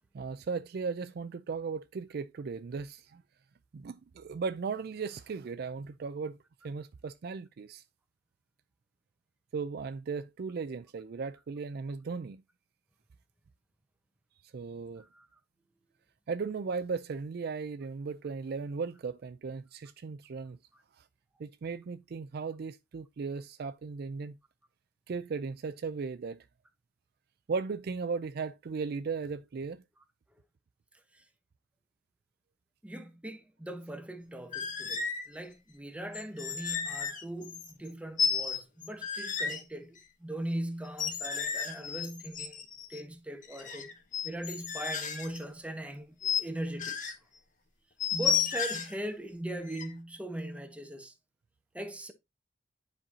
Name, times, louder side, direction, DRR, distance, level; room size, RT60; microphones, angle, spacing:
voice 1, 0.1-3.2 3.7-6.4 6.6-7.8 9.5-12.4 14.5-15.0 16.3-20.6 21.4-24.4 25.1-26.4 27.5-29.8, right 5 dB, 55° right, 0.4 m, -36 dB
voice 2, 32.8-42.6 42.9-43.9 44.2-47.0 48.1-51.1 51.7-52.1, right 1 dB, 5° right, 0.8 m, -40 dB
sound 1, 34.5-35.3 36.1-37.9 38.2-39.6 40.9-43.0 43.4-45.4 46.2-46.4 46.8-47.1 48.0-48.9 49.7-49.9, left 7 dB, 45° left, 1.1 m, -33 dB
10.0 x 4.5 x 2.7 m
head